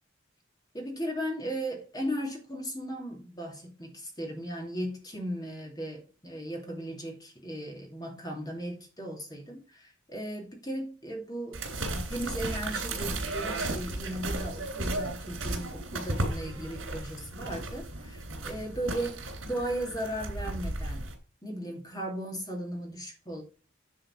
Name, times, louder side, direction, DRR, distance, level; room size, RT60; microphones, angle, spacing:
voice 1, 0.7-11.6 12.1-21.1 21.4-23.4, right 1 dB, 20° left, 2.5 m, -36 dB
sound 1, 11.5-21.1, right 2 dB, 80° right, 3.2 m, -35 dB
9.6 x 4.6 x 5.9 m
head